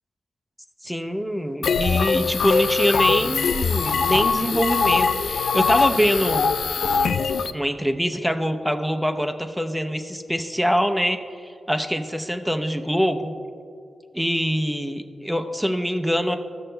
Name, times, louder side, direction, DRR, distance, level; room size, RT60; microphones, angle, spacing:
voice 1, 0.8-6.5 7.5-13.3 14.1-16.4, equal, ahead, 5 dB, 0.6 m, -24 dB
sound 1, 1.6-7.5, left 5 dB, 85° left, 0.3 m, -22 dB
16.0 x 6.5 x 2.2 m, 2.4 s
cardioid pair, 80°, 0 cm